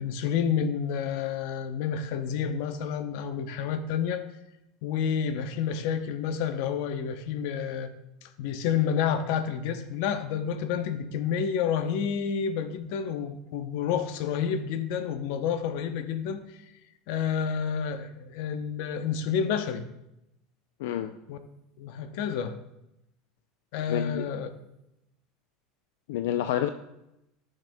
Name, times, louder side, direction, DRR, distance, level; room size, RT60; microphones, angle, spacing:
voice 1, 0.0-4.2 4.8-7.9 8.2-16.4 17.1-19.8 21.3-21.4 21.8-22.6 23.7-24.5, left 7 dB, 65° left, 9 dB, 0.7 m, -29 dB
voice 2, 20.8-21.1 23.9-24.2 26.1-26.7, left 11 dB, 90° left, 8 dB, 0.3 m, -28 dB
13.5 x 6.5 x 2.2 m, 0.88 s
supercardioid pair, 160°, 0 cm